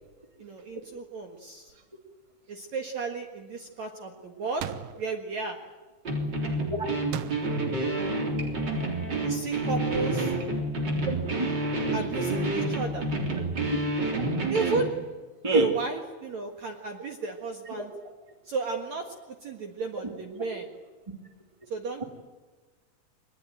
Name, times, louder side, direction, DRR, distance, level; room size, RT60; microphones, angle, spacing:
voice 1, 0.4-1.7 2.5-5.6 9.2-10.3 11.9-13.1 14.5-14.9 15.5-17.9 18.4-19.1 19.4-20.7 21.7-22.0, right 4 dB, 55° right, 3 dB, 2.6 m, -32 dB
sound 1, 4.6-5.1 7.1-7.8, right 12 dB, 80° right, 3.0 m, -36 dB
sound 2, 6.0-14.9, right 2 dB, 30° right, 3.7 m, -28 dB
voice 2, 11.0-11.5 15.4-15.7 17.7-17.8, right 1 dB, 10° right, 3 dB, 2.5 m, -28 dB
25.0 x 20.5 x 9.3 m, 1.3 s
omnidirectional pair, 4.6 m